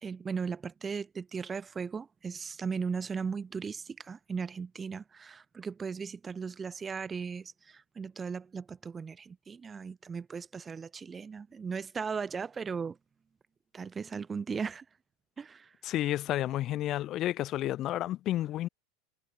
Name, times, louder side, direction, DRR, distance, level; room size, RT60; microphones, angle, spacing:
voice 1, 0.0-13.0 13.7-14.8 15.4-15.7, right 5 dB, 25° right, 2.8 m, -37 dB
voice 2, 15.8-18.7, left 14 dB, 45° left, 5.5 m, -31 dB
hypercardioid pair, 90°, 0 cm